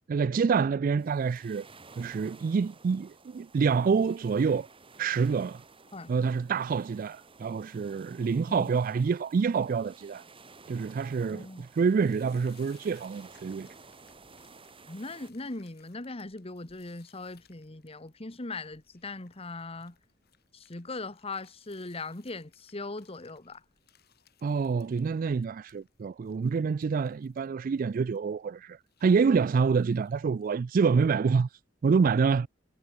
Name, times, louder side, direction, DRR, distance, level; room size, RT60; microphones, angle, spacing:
voice 1, 0.1-1.7 2.0-4.7 5.0-5.6 6.1-10.2 10.7-13.7 24.4-31.5 31.8-32.5, right 5 dB, 45° right, 0.3 m, -27 dB
sound 1, 1.0-15.3, right 4 dB, 30° right, 3.0 m, -54 dB
voice 2, 11.2-11.6 14.9-19.9 20.5-23.6, left 3 dB, 30° left, 1.4 m, -40 dB
sound 2, 11.9-30.7, left 9 dB, 55° left, 5.4 m, -66 dB
head